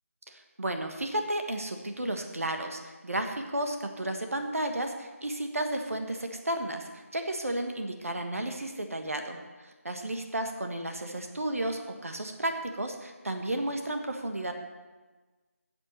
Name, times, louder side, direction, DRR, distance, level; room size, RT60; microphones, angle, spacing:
voice 1, 0.3-9.4 9.8-14.5, right 1 dB, 65° right, 4 dB, 1.5 m, -33 dB
8.7 x 7.7 x 6.6 m, 1.3 s
figure-of-eight pair, 165°, 8 cm